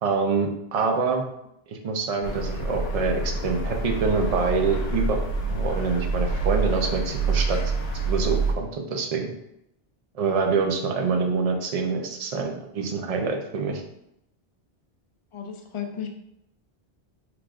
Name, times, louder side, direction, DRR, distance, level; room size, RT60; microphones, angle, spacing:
voice 1, 0.0-1.2 1.7-5.2 5.5-7.7 8.0-9.3 10.1-13.8, right 4 dB, 45° right, 3 dB, 0.6 m, -26 dB
sound 1, 2.2-8.5, right 3 dB, 85° left, 0.9 m, -27 dB
voice 2, 15.3-16.1, left 8 dB, 40° left, 4 dB, 0.5 m, -34 dB
4.7 x 3.6 x 2.4 m, 0.81 s
omnidirectional pair, 1.0 m